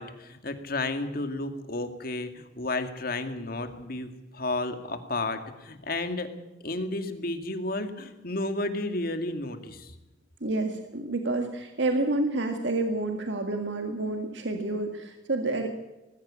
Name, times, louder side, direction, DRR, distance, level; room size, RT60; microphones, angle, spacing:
voice 1, 0.0-6.3 6.6-9.9, left 2 dB, 50° left, 7 dB, 2.2 m, -32 dB
voice 2, 10.4-15.7, right 2 dB, 75° right, 5 dB, 1.9 m, -29 dB
20.5 x 15.0 x 8.7 m, 1.0 s
head